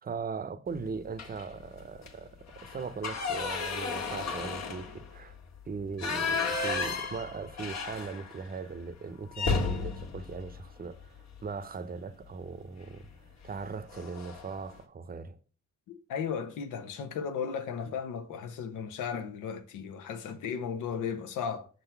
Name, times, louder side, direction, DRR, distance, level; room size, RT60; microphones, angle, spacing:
voice 1, 0.0-5.4 5.7-13.1 13.4-15.4, right 5 dB, 30° right, 0.7 m, -39 dB
sound 1, 1.1-1.6 1.9-2.1 2.5-8.5 8.8-8.9 9.3-11.5 12.8-13.1 13.5-13.6 13.9-14.5, left 4 dB, 60° left, 1.5 m, -34 dB
voice 2, 15.9-21.7, left 7 dB, 85° left, 1.1 m, -35 dB
6.2 x 3.9 x 5.7 m
cardioid pair, 90°, 30 cm